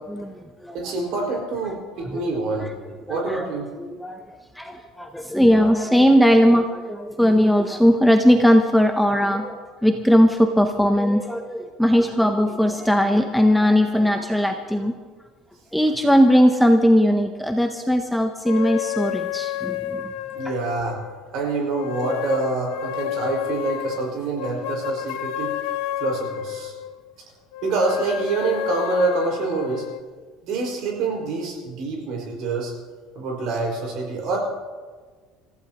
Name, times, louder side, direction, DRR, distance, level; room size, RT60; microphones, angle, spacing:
voice 1, 0.2-0.8 2.1-2.2 2.6-2.7 3.1-3.5 3.8-4.2 4.6-14.9 15.7-20.1, equal, ahead, 4 dB, 0.6 m, -19 dB
voice 2, 0.7-2.7 3.1-3.7 20.3-21.0 21.3-25.6 26.0-26.7 27.6-29.9 30.4-32.7 33.1-34.4, right 3 dB, 50° right, 0 dB, 4.9 m, -26 dB
sound 1, 18.5-21.2 21.7-26.9 27.5-30.0, left 10 dB, 70° left, 0.7 m, -30 dB
27.5 x 15.0 x 2.9 m, 1.4 s
cardioid pair, 180°, 0 cm